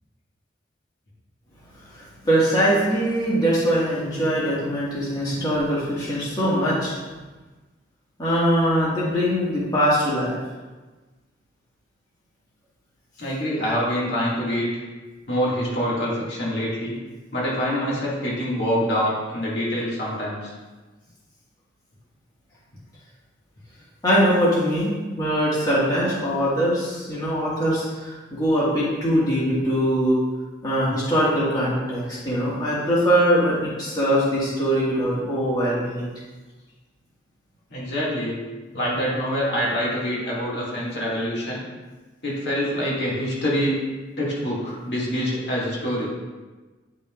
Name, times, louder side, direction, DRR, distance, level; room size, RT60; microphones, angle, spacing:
voice 1, 1.9-7.0 8.2-10.4 24.0-30.2 30.6-36.1, equal, 20° left, -8 dB, 1.8 m, -22 dB
voice 2, 13.2-14.7 15.3-17.0 17.3-20.5 37.7-38.4 38.7-41.6 42.2-43.8 44.2-46.1, equal, 65° left, -6 dB, 2.2 m, -25 dB
10.0 x 5.5 x 2.5 m, 1.3 s
head